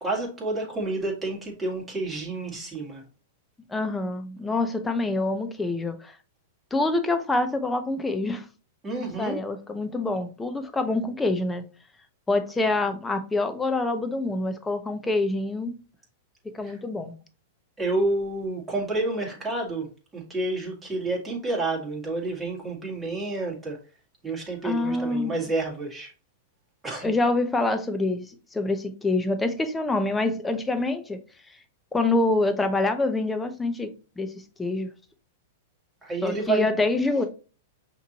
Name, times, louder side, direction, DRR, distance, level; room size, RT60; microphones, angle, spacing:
voice 1, 0.0-3.0 8.8-9.4 16.6-16.7 17.8-23.8 24.2-26.1 26.8-27.1 36.0-36.7, right 2 dB, 10° right, 2.2 m, -29 dB
voice 2, 3.7-6.1 6.7-8.5 9.0-11.6 12.3-15.7 16.5-17.1 24.6-25.3 27.0-31.2 31.5-31.6 31.9-33.9 34.2-34.3 34.6-34.9 36.2-37.2, left 2 dB, 10° left, 0.7 m, -26 dB
5.7 x 3.0 x 2.9 m
hypercardioid pair, 120°, 0 cm